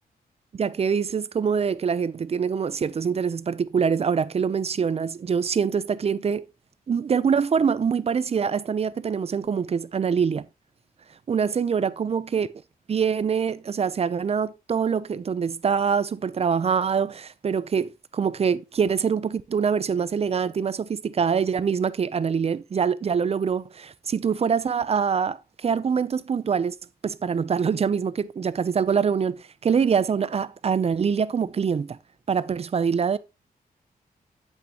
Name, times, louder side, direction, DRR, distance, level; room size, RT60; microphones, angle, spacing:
voice 1, 0.5-6.4 6.9-10.5 11.3-12.5 12.9-26.7 27.0-32.0 32.3-33.2, right 6 dB, 40° right, 0.5 m, -24 dB
8.5 x 8.4 x 2.9 m
wide cardioid pair, 125°, 16 cm